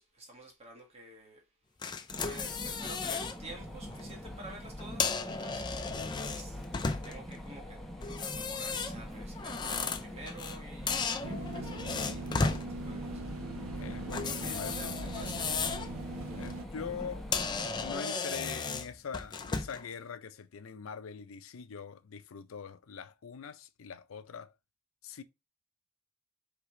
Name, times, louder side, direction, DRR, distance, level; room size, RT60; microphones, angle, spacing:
voice 1, 0.0-1.4 2.2-7.8 8.2-13.3 14.2-15.9, right 2 dB, 30° right, 1.5 m, -50 dB
sound 1, 1.8-3.4 3.8-4.0 4.8-7.3 8.0-10.6 10.9-12.6 14.1-15.9 16.3-16.5 17.0-17.1 17.3-19.9, left 4 dB, 20° left, 0.4 m, -35 dB
sound 2, 2.1-17.9, equal, ahead, 0.9 m, -43 dB
voice 2, 5.9-6.3 13.7-14.9 16.3-24.5 25.0-25.2, left 6 dB, 80° left, 0.5 m, -43 dB
sound 3, 11.2-16.7, right 3 dB, 80° right, 0.5 m, -41 dB
5.0 x 3.5 x 3.0 m
head